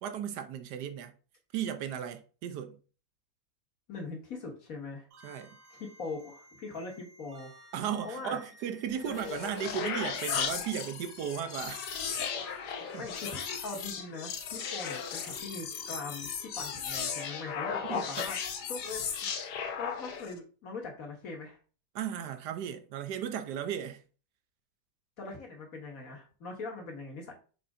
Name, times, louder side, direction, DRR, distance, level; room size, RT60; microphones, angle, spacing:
voice 1, 0.0-1.1 1.5-2.8 5.2-5.6 7.7-11.9 12.5-13.1 17.8-18.0 21.9-24.0, right 9 dB, 70° right, 1.1 m, -36 dB
voice 2, 3.9-5.1 5.8-7.5 8.0-8.4 9.1-9.2 13.0-18.4 18.7-19.0 19.4-19.5 19.8-21.6 25.2-27.3, left 3 dB, 50° left, 1.9 m, -41 dB
sound 1, 5.1-13.8, right 2 dB, 85° right, 1.8 m, -57 dB
sound 2, 8.9-20.4, left 7 dB, 65° left, 1.3 m, -36 dB
6.7 x 4.2 x 3.7 m
omnidirectional pair, 2.1 m